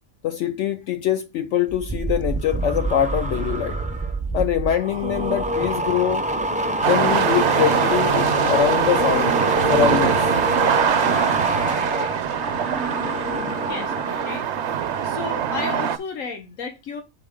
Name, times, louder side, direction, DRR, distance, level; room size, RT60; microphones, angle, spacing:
voice 1, 0.2-3.8 4.3-6.3 6.9-10.3, left 10 dB, 70° left, 0.9 m, -23 dB
sound 1, 1.7-14.4 14.7-15.1, right 1 dB, 10° right, 0.5 m, -26 dB
Wind instrument woodwind instrument, 6.7-11.1, right 23 dB, 85° right, 1.0 m, -38 dB
sound 2, 6.8-16.0, right 8 dB, 65° right, 1.0 m, -23 dB
voice 2, 13.6-14.5 15.0-17.0, left 5 dB, 90° left, 1.6 m, -33 dB
8.0 x 4.4 x 3.6 m
omnidirectional pair, 1.3 m